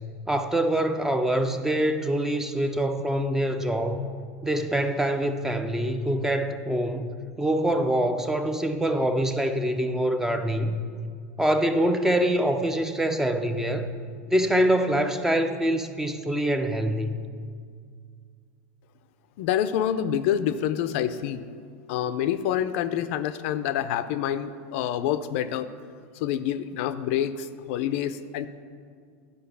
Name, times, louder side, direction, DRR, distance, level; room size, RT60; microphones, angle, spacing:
voice 1, 0.3-4.0 4.4-7.1 7.4-10.8 11.4-13.9 14.3-17.3, right 1 dB, 5° right, 7 dB, 0.5 m, -25 dB
voice 2, 19.4-21.4 21.9-25.7 26.2-28.5, left 10 dB, 60° left, 12 dB, 0.5 m, -27 dB
11.5 x 5.3 x 6.7 m, 2.1 s
supercardioid pair, 145°, 7 cm